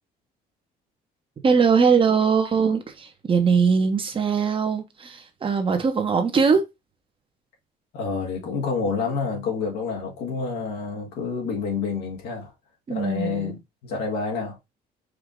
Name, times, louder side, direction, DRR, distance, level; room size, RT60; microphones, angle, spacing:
voice 1, 1.4-6.6 12.9-13.5, right 5 dB, 30° right, 1.2 m, -21 dB
voice 2, 7.9-12.5 12.9-14.6, left 5 dB, 80° left, 1.9 m, -28 dB
4.8 x 2.8 x 3.7 m
cardioid pair, 110°, 17 cm